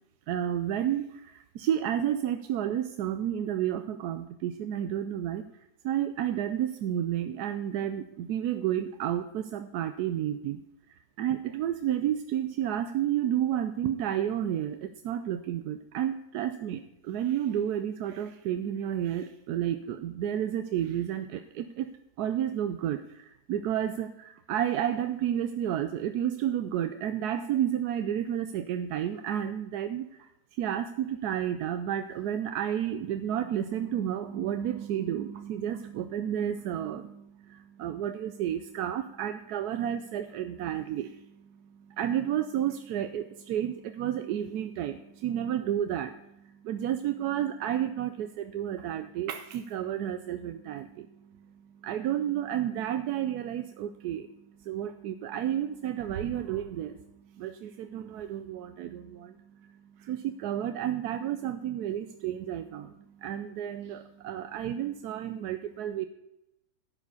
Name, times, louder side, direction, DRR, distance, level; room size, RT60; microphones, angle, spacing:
voice 1, 0.3-10.6 10.9-21.9 22.2-66.0, right 10 dB, 75° right, 9 dB, 1.1 m, -31 dB
11.5 x 4.9 x 8.0 m, 0.86 s
omnidirectional pair, 1.8 m